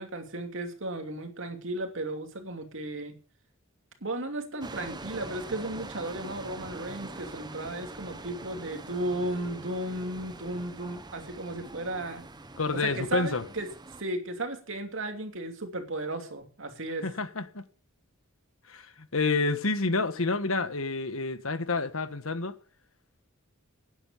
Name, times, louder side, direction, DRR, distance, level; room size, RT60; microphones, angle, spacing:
voice 1, 0.0-3.1 4.0-12.2 12.7-13.7 14.0-17.1, right 1 dB, 65° right, 2.8 m, -35 dB
sound 1, 4.6-14.0, right 2 dB, 20° right, 1.0 m, -44 dB
voice 2, 12.6-13.4 17.0-17.6 18.7-18.9 19.1-22.5, left 3 dB, 80° left, 1.5 m, -28 dB
12.5 x 9.9 x 7.1 m
head